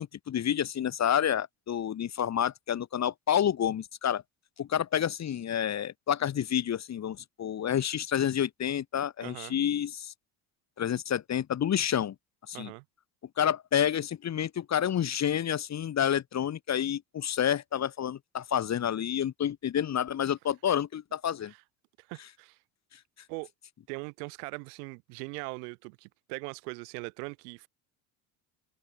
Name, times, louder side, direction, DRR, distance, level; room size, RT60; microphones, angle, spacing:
voice 1, 0.0-4.2 4.6-10.1 10.8-12.1 12.5-12.7 13.4-21.5, left 9 dB, 35° left, 1.2 m, -29 dB
voice 2, 9.2-9.6 12.5-12.8 21.5-21.6 22.0-22.6 23.3-23.5 23.9-27.7, right 35 dB, 80° right, 2.9 m, -40 dB
open air
hypercardioid pair, 75°, 46 cm